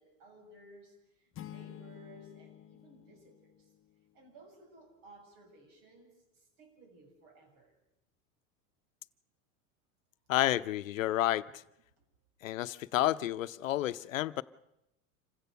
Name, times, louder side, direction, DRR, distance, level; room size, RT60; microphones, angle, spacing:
voice 1, 0.0-3.7 4.1-7.8 11.0-11.1 12.0-12.1, right 1 dB, 60° right, 3 dB, 7.3 m, -57 dB
sound 1, 1.3-4.1, left 11 dB, 35° left, 0.9 m, -50 dB
voice 2, 10.3-11.4 12.4-14.4, left 14 dB, 85° left, 15 dB, 0.8 m, -30 dB
27.0 x 15.5 x 6.8 m, 0.85 s
hypercardioid pair, 90°, 38 cm